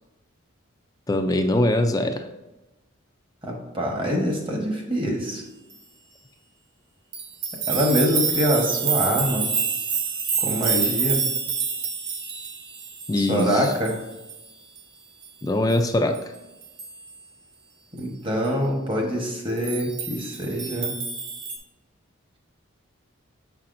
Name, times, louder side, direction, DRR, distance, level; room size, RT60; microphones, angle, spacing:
voice 1, 1.1-2.2 13.1-13.7 15.4-16.2, left 1 dB, 15° left, 6 dB, 0.3 m, -22 dB
voice 2, 3.4-5.4 7.7-9.5 10.4-11.3 13.1-13.9 17.9-21.0, equal, 25° right, 0 dB, 1.1 m, -25 dB
sound 1, 7.1-14.4 14.8-14.9 15.2-15.3 15.7-15.8 16.1-16.2 16.6-17.1 19.6-21.6, right 6 dB, 60° right, 0.9 m, -28 dB
7.4 x 5.7 x 2.6 m, 1.0 s
head